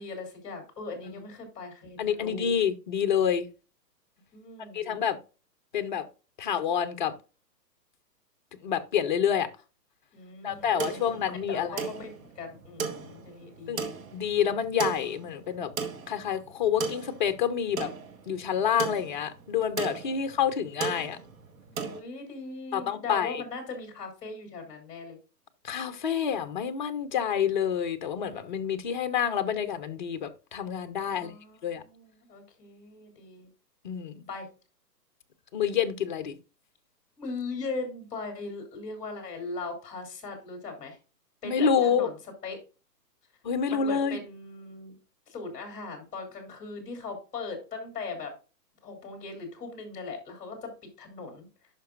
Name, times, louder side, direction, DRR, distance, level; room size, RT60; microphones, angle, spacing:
voice 1, 0.0-2.5 4.3-4.8 10.1-11.2 11.5-12.1 12.4-13.9 21.8-25.2 31.1-33.5 34.3-34.5 37.2-41.0 41.4-42.2 42.4-42.6 43.7-44.9 45.3-48.3 48.8-51.5, left 3 dB, 15° left, 2.9 m, -39 dB
voice 2, 2.0-3.5 4.7-5.2 5.7-6.1 6.4-7.1 8.6-9.5 10.4-11.8 13.7-13.8 14.1-15.7 16.1-17.9 18.3-21.2 22.7-23.4 25.6-31.3 31.6-31.8 33.8-34.2 35.5-36.4 41.4-42.1 43.4-44.2, left 8 dB, 30° left, 0.6 m, -28 dB
sound 1, 10.5-22.0, right 5 dB, 55° right, 1.6 m, -37 dB
11.0 x 5.8 x 2.5 m
hypercardioid pair, 155°, 49 cm